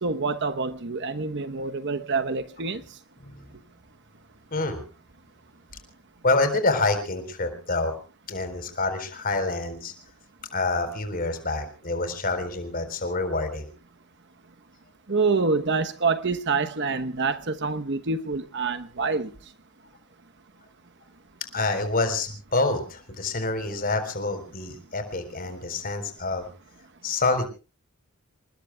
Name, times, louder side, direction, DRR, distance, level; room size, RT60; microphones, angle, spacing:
voice 1, 0.0-2.8 15.1-19.3, right 4 dB, 55° right, 1.0 m, -26 dB
voice 2, 3.2-3.5 4.5-4.8 6.2-7.9 8.3-9.9 10.5-13.7 21.4-26.5 27.0-27.5, left 3 dB, 40° left, 4.1 m, -27 dB
28.0 x 20.0 x 2.3 m
head